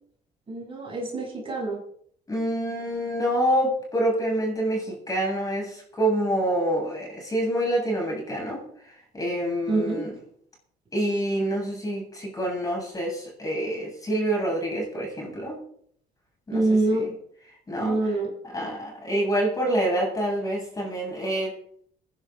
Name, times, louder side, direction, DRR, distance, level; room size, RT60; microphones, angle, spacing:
voice 1, 0.5-1.8 9.7-10.0 16.5-17.2 17.8-18.3, right 2 dB, 30° right, -3 dB, 7.2 m, -25 dB
voice 2, 2.3-8.6 9.1-10.1 10.9-15.6 16.5-16.6 16.9-17.1 17.7-18.0 18.5-21.5, right 1 dB, 20° left, -2 dB, 7.9 m, -27 dB
21.5 x 11.0 x 3.9 m, 0.64 s
cardioid pair, 110°, 17 cm